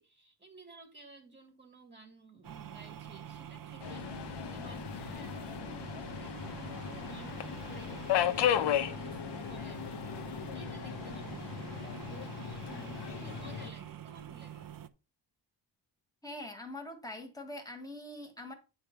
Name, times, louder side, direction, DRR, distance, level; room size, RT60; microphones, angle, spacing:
voice 1, 0.0-9.2 9.5-14.8, right 3 dB, 15° right, 1.5 m, -54 dB
sound 1, 2.4-14.9, right 10 dB, 50° right, 0.7 m, -46 dB
Subway metro underground, 3.8-13.7, left 10 dB, 65° left, 0.8 m, -35 dB
voice 2, 16.2-18.5, left 1 dB, 10° left, 1.5 m, -43 dB
9.7 x 3.4 x 5.7 m
wide cardioid pair, 155°, 44 cm